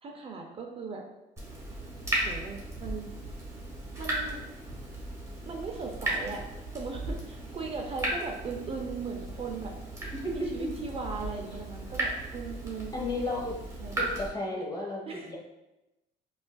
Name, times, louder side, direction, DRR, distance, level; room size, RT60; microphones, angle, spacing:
voice 1, 0.0-1.0 2.2-3.1 4.0-4.4 5.4-6.4 6.7-9.8 10.2-12.9 13.8-14.1 15.1-15.3, right 4 dB, 35° right, 2 dB, 0.4 m, -38 dB
Water tap faucet / Drip, 1.4-14.3, right 1 dB, 15° right, 1.1 m, -36 dB
voice 2, 10.0-10.7 12.9-13.5 14.0-15.0 15.3-15.4, left 2 dB, 25° left, -1 dB, 0.9 m, -33 dB
5.1 x 2.4 x 2.2 m, 0.94 s
cardioid pair, 110°, 17 cm